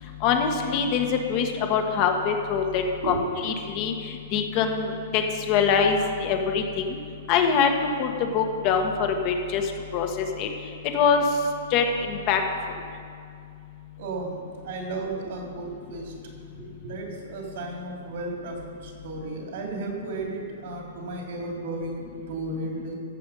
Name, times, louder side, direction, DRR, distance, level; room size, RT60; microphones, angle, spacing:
voice 1, 0.2-3.1 3.4-7.0 7.3-7.7 8.0-9.6 9.9-10.5 10.9-11.2 11.7-12.4, left 6 dB, 40° left, 4 dB, 1.5 m, -24 dB
voice 2, 14.0-22.9, right 2 dB, 65° right, 0 dB, 2.8 m, -34 dB
14.5 x 7.0 x 5.5 m, 2.3 s
hypercardioid pair, 135°, 0 cm